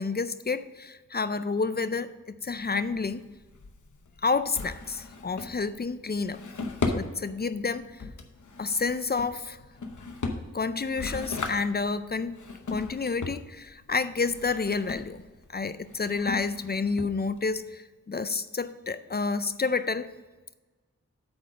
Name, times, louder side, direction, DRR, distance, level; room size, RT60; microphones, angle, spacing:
voice 1, 0.0-3.2 4.2-6.4 6.9-8.0 8.6-9.6 10.5-12.4 12.7-15.2 15.5-20.1, left 4 dB, 35° left, 13 dB, 0.4 m, -29 dB
Drawer open or close, 2.4-17.6, left 3 dB, 80° left, 0.8 m, -37 dB
8.5 x 4.0 x 6.1 m, 1.2 s
wide cardioid pair, 65°, 30 cm